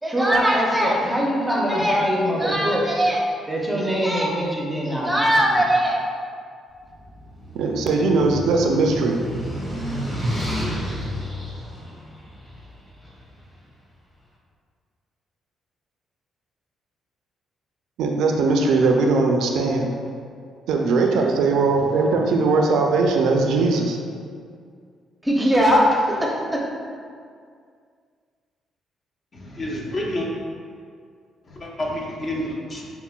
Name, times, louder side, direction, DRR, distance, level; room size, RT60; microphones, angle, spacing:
voice 1, 0.0-6.0 25.2-26.6, equal, 10° right, -2 dB, 0.6 m, -21 dB
sound 1, 6.9-13.2, equal, 10° left, 1.0 m, -30 dB
voice 2, 7.5-9.2 18.0-19.9 20.7-24.0, right 3 dB, 80° right, 2 dB, 0.3 m, -20 dB
voice 3, 29.3-30.3 31.4-32.9, left 1 dB, 40° left, -2 dB, 0.6 m, -29 dB
5.6 x 2.1 x 2.2 m, 2.2 s
cardioid pair, 90°, 0 cm